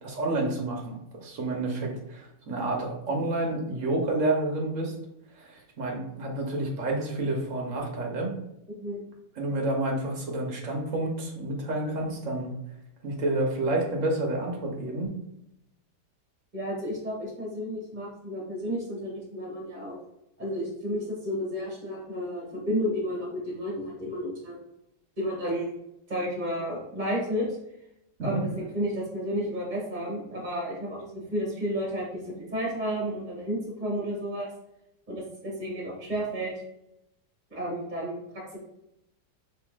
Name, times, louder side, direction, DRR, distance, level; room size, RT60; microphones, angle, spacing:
voice 1, 0.0-4.9 5.4-8.4 9.4-12.6 13.0-15.2 28.2-28.4, right 2 dB, 50° right, 0 dB, 1.2 m, -29 dB
voice 2, 16.5-20.0 20.4-24.6 25.2-25.8 26.1-27.5 28.2-34.5 35.1-36.5 37.5-38.6, equal, 25° right, -3 dB, 1.7 m, -32 dB
5.5 x 3.4 x 2.4 m, 0.84 s
omnidirectional pair, 1.9 m